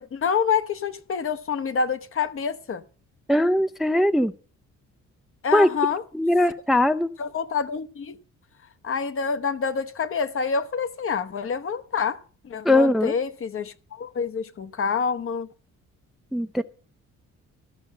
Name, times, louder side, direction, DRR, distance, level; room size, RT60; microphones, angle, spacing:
voice 1, 0.0-2.8 5.4-6.0 7.2-8.2 8.8-15.5, left 6 dB, 45° left, 0.9 m, -27 dB
voice 2, 3.3-4.3 5.5-5.7 6.1-7.1 12.6-13.1 16.3-16.6, left 1 dB, ahead, 0.5 m, -20 dB
13.0 x 5.5 x 7.7 m
cardioid pair, 90°, 30 cm